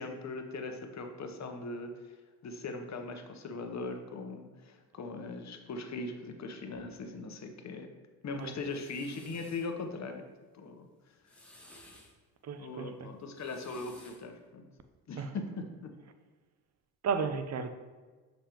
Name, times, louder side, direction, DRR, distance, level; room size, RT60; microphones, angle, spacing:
voice 1, 0.0-2.1 2.4-7.9 8.2-10.2 10.5-11.3 12.6-14.7 15.1-15.9, left 3 dB, 45° left, 5 dB, 0.9 m, -40 dB
sound 1, 8.4-9.7 11.1-12.1 13.2-14.3, left 1 dB, 5° left, 1.6 m, -56 dB
voice 2, 12.4-13.1 15.2-15.3 17.0-17.7, right 6 dB, 40° right, 9 dB, 0.7 m, -33 dB
6.6 x 5.1 x 3.0 m, 1.4 s
supercardioid pair, 65°, 39 cm